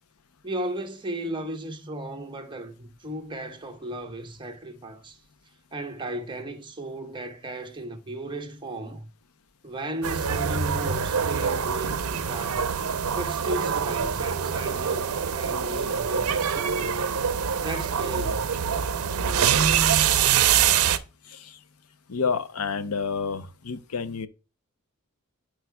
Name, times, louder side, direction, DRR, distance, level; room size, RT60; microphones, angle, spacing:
voice 1, 0.4-5.2 5.7-9.1 9.6-12.7 13.1-15.1 15.3-17.0 17.6-18.5, right 1 dB, 20° right, 1.1 m, -35 dB
sound 1, 10.0-21.0, right 7 dB, 80° right, 0.6 m, -24 dB
voice 2, 21.3-21.6 22.1-24.3, left 5 dB, 80° left, 0.7 m, -29 dB
12.0 x 4.7 x 2.2 m
head